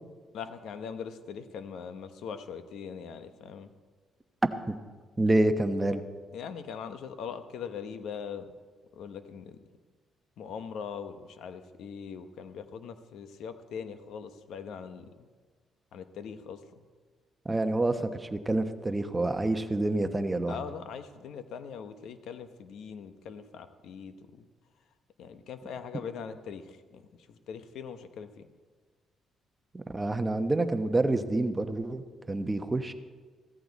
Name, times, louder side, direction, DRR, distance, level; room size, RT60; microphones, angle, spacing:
voice 1, 0.3-3.7 6.3-8.5 8.9-9.6 10.4-15.3 15.9-16.8 20.5-24.4 25.2-28.5, left 7 dB, 75° left, 10 dB, 1.0 m, -41 dB
voice 2, 5.2-6.0 17.4-20.6 29.7-32.9, right 2 dB, 20° right, 8 dB, 1.1 m, -28 dB
15.5 x 14.0 x 4.1 m, 1.4 s
cardioid pair, 90°, 0 cm